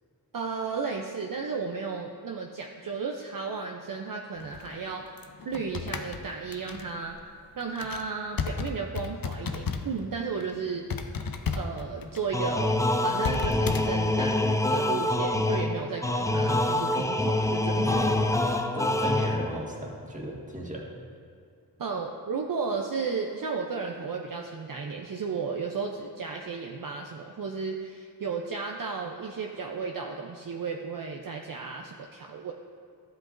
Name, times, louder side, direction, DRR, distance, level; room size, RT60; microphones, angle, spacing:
voice 1, 0.3-5.0 5.4-7.2 7.6-10.9 11.6-17.9 21.8-32.5, right 5 dB, 55° right, 1 dB, 0.6 m, -34 dB
sound 1, 4.4-10.0 10.3-10.5 10.9-13.8, left 5 dB, 55° left, 0.6 m, -34 dB
sound 2, 12.3-19.7, left 1 dB, 10° left, 0.4 m, -26 dB
voice 2, 17.8-18.1 18.7-20.9, right 1 dB, 20° right, -3 dB, 1.7 m, -35 dB
12.0 x 7.8 x 2.6 m, 2.3 s
cardioid pair, 50°, 41 cm